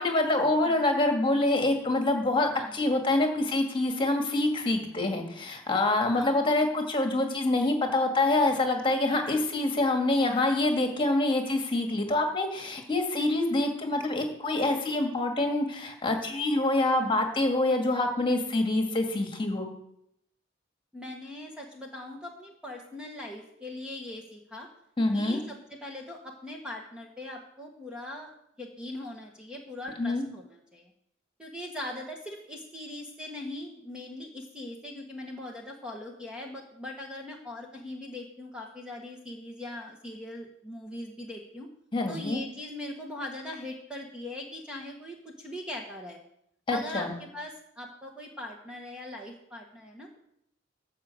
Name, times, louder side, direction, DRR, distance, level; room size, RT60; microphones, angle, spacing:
voice 1, 0.0-19.7 25.0-25.4 30.0-30.2 41.9-42.4 46.7-47.1, left 2 dB, 25° left, 3 dB, 1.9 m, -26 dB
voice 2, 6.1-6.4 9.2-9.5 20.9-24.7 25.1-28.3 28.6-30.9 31.4-41.7 42.1-46.2 46.7-50.2, left 1 dB, 5° right, 0 dB, 1.4 m, -40 dB
13.0 x 5.0 x 7.8 m, 0.75 s
head